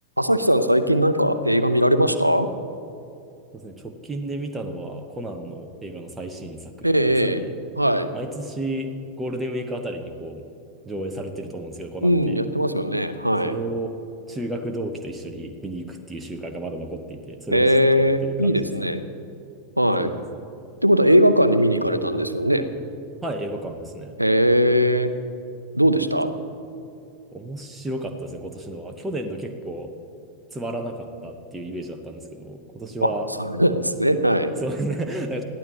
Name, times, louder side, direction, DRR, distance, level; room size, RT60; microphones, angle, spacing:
voice 1, 0.2-2.5 6.8-7.4 7.8-8.1 12.0-13.6 17.5-19.0 19.8-20.1 20.8-22.7 24.2-25.1 25.7-26.3 33.0-33.1 33.4-34.5, equal, 90° right, 11 dB, 0.7 m, -19 dB
voice 2, 3.5-7.5 8.1-10.4 10.8-12.4 13.4-13.9 14.3-18.9 20.0-20.2 20.6-20.8 23.2-24.2 27.3-29.9 30.5-33.3 34.6-35.4, right 1 dB, 10° right, 3 dB, 1.2 m, -32 dB
21.0 x 14.5 x 3.1 m, 2.6 s
figure-of-eight pair, 90°, 0 cm